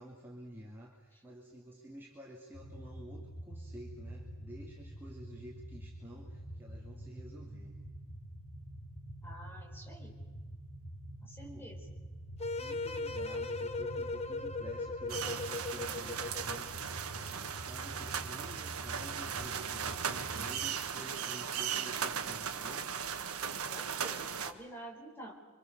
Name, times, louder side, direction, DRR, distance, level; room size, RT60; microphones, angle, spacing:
voice 1, 0.0-7.7 11.3-11.7 12.5-22.9, right 1 dB, 10° right, -3 dB, 2.6 m, -51 dB
sound 1, 2.5-20.7, right 1 dB, 80° left, 3.8 m, -47 dB
voice 2, 9.2-10.1 11.2-11.8 23.7-25.3, right 1 dB, 10° left, 0 dB, 4.6 m, -49 dB
sound 2, 12.4-16.7, left 3 dB, 30° left, 1.0 m, -38 dB
sound 3, 15.1-24.5, right 7 dB, 80° right, 1.4 m, -37 dB
27.5 x 25.0 x 6.8 m, 1.4 s
head